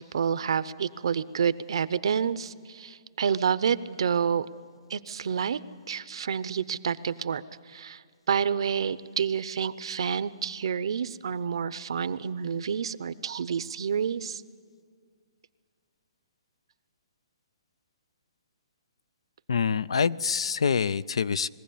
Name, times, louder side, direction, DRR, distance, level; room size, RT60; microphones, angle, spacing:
voice 1, 0.0-4.5 4.9-5.6 5.9-8.0 8.3-14.4, right 7 dB, 70° right, 16 dB, 0.7 m, -29 dB
voice 2, 19.5-21.5, left 6 dB, 85° left, 20 dB, 0.5 m, -26 dB
21.5 x 15.5 x 8.5 m, 2.1 s
hypercardioid pair, 160°, 3 cm